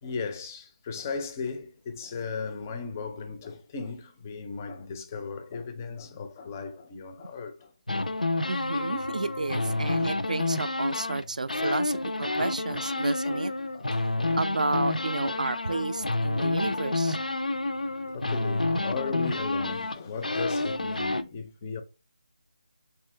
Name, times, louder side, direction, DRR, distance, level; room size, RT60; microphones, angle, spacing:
voice 1, 0.0-7.7 8.4-8.5 9.7-9.8 11.6-11.7 12.2-12.3 12.7-12.8 13.2-13.4 13.7-13.9 14.2-14.4 15.2-15.4 15.7-15.8 16.2-16.3 18.1-21.8, left 5 dB, 20° left, 0.4 m, -36 dB
sound 1, 7.9-11.2 11.5-21.2, left 2 dB, 85° left, 0.4 m, -29 dB
voice 2, 8.5-13.5 14.4-17.2, right 3 dB, 70° right, 0.3 m, -31 dB
3.6 x 2.8 x 3.1 m
figure-of-eight pair, 160°, 4 cm